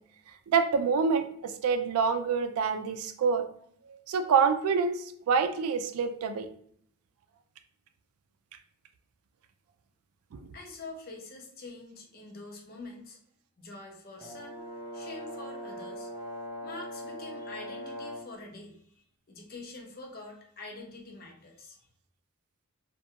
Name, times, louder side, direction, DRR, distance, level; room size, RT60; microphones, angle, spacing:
voice 1, 0.5-3.4 4.1-6.5 10.3-10.5, right 5 dB, 85° right, 9 dB, 0.3 m, -27 dB
voice 2, 10.5-13.2 13.6-14.6 14.9-16.1 16.6-18.8 19.3-21.8, left 2 dB, 45° left, 1 dB, 0.6 m, -45 dB
Brass instrument, 14.2-18.4, equal, 20° right, 0.6 m, -40 dB
2.3 x 2.2 x 2.7 m, 0.64 s
head